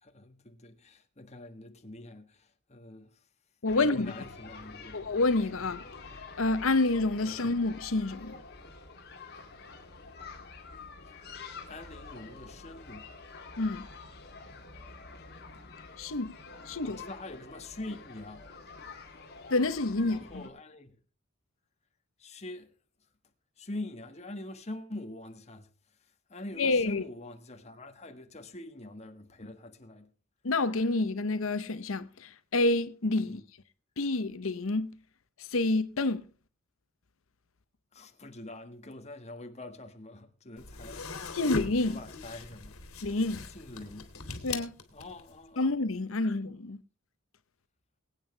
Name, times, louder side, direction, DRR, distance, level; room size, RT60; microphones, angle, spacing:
voice 1, 0.0-3.2 3.7-5.0 7.3-7.4 11.1-11.2 11.7-13.1 16.8-18.4 20.0-21.0 22.2-22.7 23.6-25.7 26.3-30.1 33.2-33.4 37.9-41.4 41.7-42.8 43.5-44.1 44.9-45.7, left 2 dB, 30° left, 1.6 m, -44 dB
voice 2, 3.6-4.1 4.9-5.8 6.4-8.4 13.6-13.9 16.0-16.4 16.7-17.0 19.5-20.5 26.6-27.0 30.4-33.4 34.0-35.0 35.4-36.3 41.3-42.0 43.0-43.4 44.4-44.7 45.6-46.8, left 2 dB, 70° left, 0.9 m, -28 dB
sound 1, 3.7-20.5, left 4 dB, 50° left, 3.0 m, -47 dB
sound 2, 40.6-45.3, left 4 dB, 85° left, 2.6 m, -40 dB
22.0 x 9.1 x 3.3 m
head